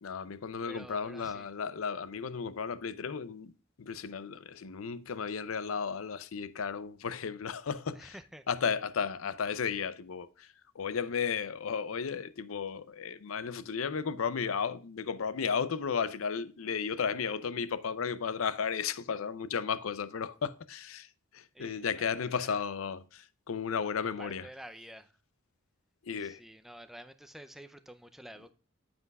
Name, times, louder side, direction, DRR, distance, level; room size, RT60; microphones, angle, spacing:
voice 1, 0.0-3.5 3.8-8.1 8.5-24.5 26.0-26.4, left 6 dB, 85° left, 0.5 m, -34 dB
voice 2, 0.7-1.5 7.9-8.5 21.5-22.6 24.0-25.2 26.1-28.5, equal, ahead, 0.5 m, -50 dB
9.4 x 7.8 x 2.3 m
head